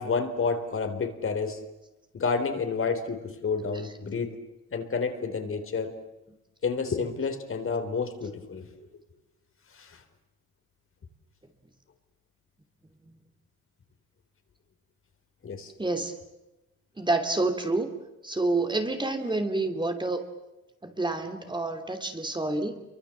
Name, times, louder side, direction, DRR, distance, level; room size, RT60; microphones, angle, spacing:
voice 1, 0.0-1.6 2.1-4.4 4.7-5.9 6.6-8.7 9.7-10.0 15.4-15.7, left 5 dB, 45° left, 7 dB, 3.8 m, -30 dB
voice 2, 15.8-16.1 17.0-18.0 18.2-20.2 20.8-22.8, right 2 dB, 15° right, 5 dB, 2.9 m, -28 dB
28.5 x 24.0 x 7.5 m, 0.99 s
cardioid pair, 90°, 30 cm